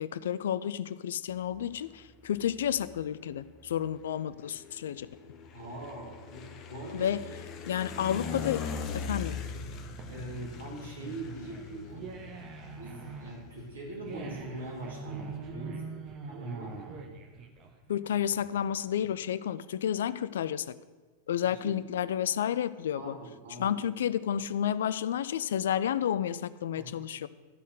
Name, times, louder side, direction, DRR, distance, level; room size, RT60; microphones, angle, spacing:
voice 1, 0.0-5.1 6.9-7.2 7.7-8.6 8.9-9.4 17.9-20.8 21.3-23.2 23.6-27.3, left 9 dB, 60° left, 16 dB, 0.3 m, -31 dB
sound 1, 1.3-15.4, left 5 dB, 35° left, 0.8 m, -42 dB
voice 2, 5.5-7.1 8.3-8.5 10.1-12.1 12.8-16.0 16.3-16.9 21.6-21.8 22.9-23.8 26.7-26.9, right 1 dB, 70° right, -2 dB, 2.2 m, -42 dB
sound 2, 9.7-18.8, right 4 dB, 35° right, 1.1 m, -43 dB
12.5 x 4.2 x 6.6 m, 1.3 s
figure-of-eight pair, 90°, 0 cm